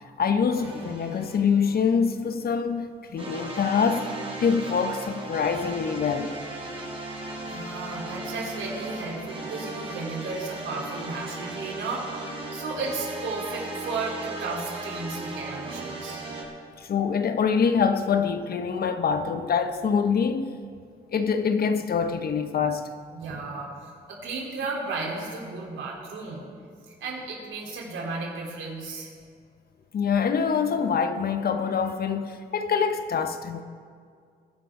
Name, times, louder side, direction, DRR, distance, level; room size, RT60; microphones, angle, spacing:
voice 1, 0.2-6.3 16.8-20.6 21.1-22.9 29.9-33.6, left 6 dB, 50° left, 0.9 m, -25 dB
sound 1, 0.5-2.3 3.2-16.4, right 2 dB, 30° right, 4.1 m, -37 dB
voice 2, 7.4-12.0 12.5-16.2 23.1-26.4 26.9-29.1, right 3 dB, 75° right, 3.6 m, -34 dB
21.5 x 11.0 x 3.8 m
cardioid pair, 90°, 20 cm